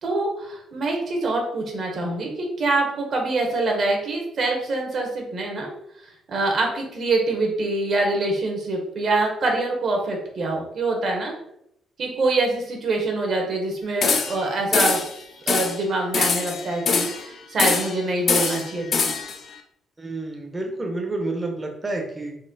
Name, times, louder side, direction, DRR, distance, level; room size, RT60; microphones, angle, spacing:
voice 1, 0.0-5.7 6.3-11.3 12.0-15.1 15.5-19.1, right 2 dB, 55° right, 1 dB, 1.2 m, -25 dB
sound 1, 14.0-14.5 14.7-15.1 15.5-15.8 16.1-17.2 17.6-18.0 18.3-19.4, left 5 dB, 55° left, 0.5 m, -23 dB
voice 2, 20.0-22.4, right 2 dB, 20° right, 2 dB, 0.8 m, -29 dB
4.1 x 2.0 x 3.9 m, 0.74 s
cardioid pair, 90°, 0 cm